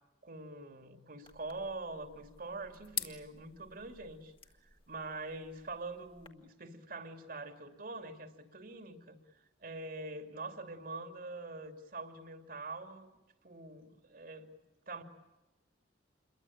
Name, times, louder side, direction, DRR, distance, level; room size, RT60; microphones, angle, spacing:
voice 1, 0.2-4.3 4.6-13.1 13.4-14.5 14.9-15.0, right 3 dB, 50° right, 7 dB, 2.9 m, -44 dB
sound 1, 1.2-6.3, left 7 dB, 30° left, 2.1 m, -47 dB
28.5 x 23.0 x 8.8 m, 1.0 s
head